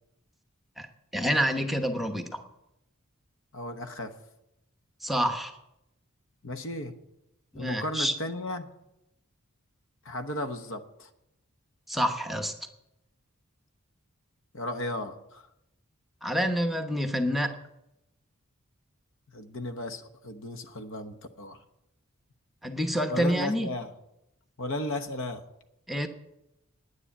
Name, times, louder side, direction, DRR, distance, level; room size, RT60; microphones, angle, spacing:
voice 1, 1.1-2.4 5.0-5.6 7.5-8.1 11.9-12.5 16.2-17.6 22.6-23.7 25.9-26.1, equal, ahead, 6 dB, 0.9 m, -27 dB
voice 2, 3.5-4.1 6.4-6.9 7.5-8.7 10.0-11.1 14.5-15.5 19.3-21.6 23.1-23.9 24.6-25.4, left 1 dB, 60° left, 8 dB, 1.1 m, -35 dB
9.8 x 9.7 x 8.6 m, 0.87 s
head